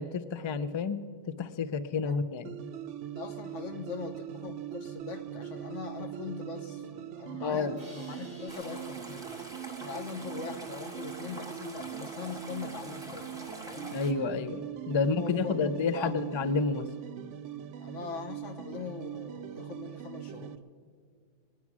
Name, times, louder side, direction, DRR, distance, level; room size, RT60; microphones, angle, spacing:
voice 1, 0.0-2.5 7.4-7.8 13.9-16.9, left 4 dB, 45° left, 12 dB, 0.4 m, -30 dB
sound 1, 2.4-20.6, right 12 dB, 80° right, 0.9 m, -42 dB
voice 2, 3.1-9.4 9.8-13.3 13.7-14.0 15.0-16.2 17.8-20.6, left 5 dB, 85° left, 6 dB, 1.4 m, -41 dB
Crash cymbal, 7.8-10.8, equal, 25° left, 5.1 m, -55 dB
sound 2, 8.5-14.1, right 1 dB, 5° right, 1.7 m, -45 dB
21.0 x 9.4 x 6.0 m, 2.2 s
omnidirectional pair, 1.2 m